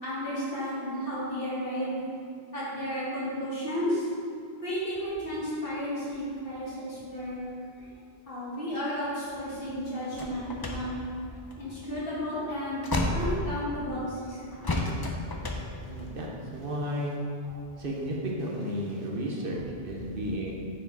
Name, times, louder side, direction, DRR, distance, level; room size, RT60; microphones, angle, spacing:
voice 1, 0.0-1.9 2.5-4.1 4.6-7.4 7.8-7.9 8.3-11.1 11.6-14.8 17.5-17.6 20.1-20.2, equal, 60° left, -8 dB, 2.2 m, -33 dB
sound 1, 10.2-14.0 14.6-16.7, left 2 dB, 30° left, 0.5 m, -32 dB
voice 2, 15.8-16.3 16.5-17.2 17.8-20.5, equal, 60° right, -2 dB, 1.1 m, -33 dB
6.3 x 4.8 x 4.7 m, 2.3 s
omnidirectional pair, 1.1 m